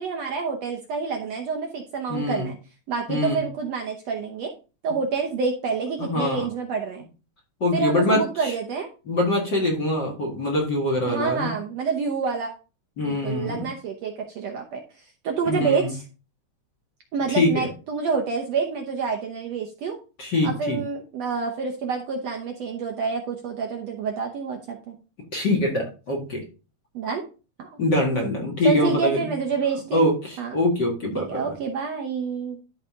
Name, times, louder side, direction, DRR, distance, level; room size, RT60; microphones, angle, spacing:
voice 1, 0.0-2.6 2.9-4.5 4.8-7.1 7.7-8.9 11.1-12.5 13.1-14.8 15.2-16.0 17.1-20.0 20.4-25.0 26.9-27.2 27.6-27.7 28.6-30.1 30.4-30.5 31.1-32.6, right 5 dB, 65° right, 2 dB, 1.8 m, -28 dB
voice 2, 2.1-2.5 3.1-3.4 6.0-6.5 7.6-8.5 9.1-11.5 13.0-13.7 15.5-15.9 17.3-17.7 20.2-20.8 25.3-26.4 27.8-29.3 29.9-31.4, left 1 dB, 40° left, -1 dB, 2.0 m, -24 dB
12.5 x 4.3 x 3.7 m, 0.33 s
omnidirectional pair, 3.9 m